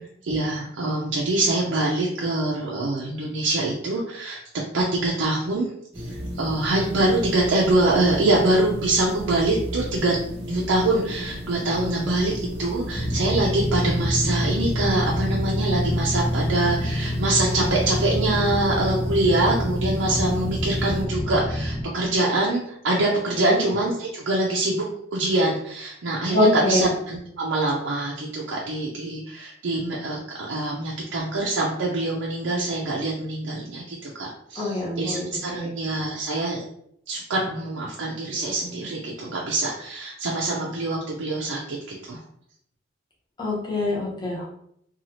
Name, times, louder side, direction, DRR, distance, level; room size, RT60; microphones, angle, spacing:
voice 1, 0.2-4.4 4.7-5.7 6.0-10.2 10.5-12.3 12.6-24.8 25.1-36.6 37.1-42.2, right 2 dB, 80° right, -3 dB, 0.5 m, -24 dB
sound 1, 5.9-21.1, equal, 30° right, 0.7 m, -34 dB
sound 2, 12.9-21.8, equal, 55° left, 0.9 m, -26 dB
voice 2, 26.3-26.9 34.6-35.2 35.5-35.7 43.4-44.5, left 2 dB, 25° left, -5 dB, 0.8 m, -24 dB
2.7 x 2.3 x 2.9 m, 0.71 s
head